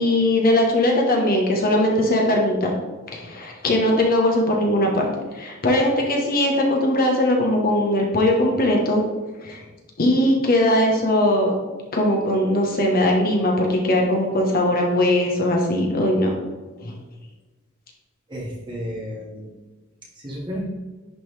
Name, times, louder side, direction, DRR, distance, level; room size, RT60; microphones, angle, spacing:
voice 1, 0.0-2.7 3.1-5.1 5.3-9.0 9.4-9.6 10.0-11.6 11.9-16.3 16.8-16.9, left 1 dB, 45° left, 0 dB, 1.1 m, -20 dB
voice 2, 18.3-19.5 20.1-20.6, equal, 20° right, -4 dB, 1.9 m, -32 dB
10.5 x 3.8 x 3.4 m, 1.3 s
head